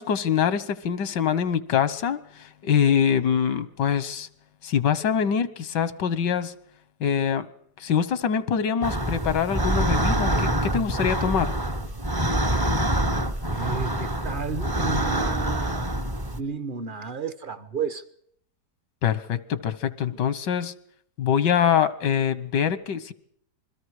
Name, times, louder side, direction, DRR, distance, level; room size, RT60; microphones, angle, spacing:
voice 1, 0.0-4.3 4.6-6.5 7.0-7.5 7.8-11.5 19.0-20.7 21.2-23.1, left 8 dB, 90° left, 1.8 m, -24 dB
sound 1, 8.8-16.4, right 1 dB, 20° right, 0.7 m, -25 dB
voice 2, 13.5-16.0 16.3-18.0, right 5 dB, 35° right, 1.1 m, -32 dB
27.5 x 22.0 x 4.8 m
omnidirectional pair, 1.8 m